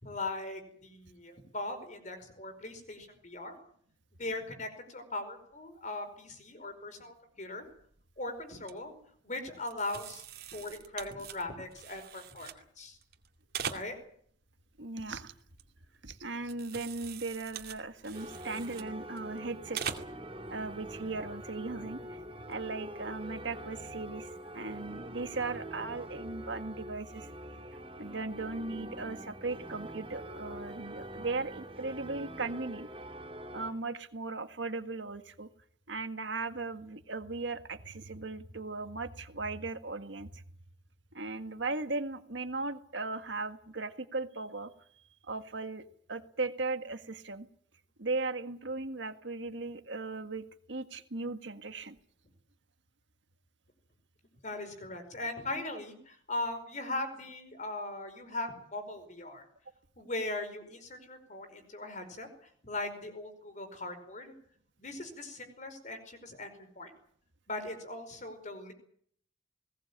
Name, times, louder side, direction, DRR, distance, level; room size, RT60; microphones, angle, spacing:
voice 1, 0.0-3.6 4.2-7.7 8.2-8.9 9.2-10.2 10.5-13.0 13.7-14.0 54.4-59.4 60.0-62.3 62.6-64.3 64.8-66.5 66.7-66.9 67.5-68.7, left 2 dB, 40° left, 8 dB, 5.0 m, -39 dB
sound 1, 7.7-8.0 8.4-8.7 9.6-12.6 13.0-14.3 14.6-16.0 16.4-19.4 19.7-20.2 20.6-20.7 22.3-22.5, right 7 dB, 55° right, 2.4 m, -43 dB
voice 2, 14.8-15.3 16.0-19.8 20.5-22.2 22.5-27.3 28.0-32.9 33.5-35.5 35.9-40.4 41.1-44.7 45.3-47.5 48.0-51.9, right 3 dB, 75° right, 9 dB, 1.7 m, -37 dB
sound 2, 18.1-33.7, right 1 dB, 30° right, 4.5 m, -44 dB
20.5 x 19.0 x 8.8 m, 0.64 s
head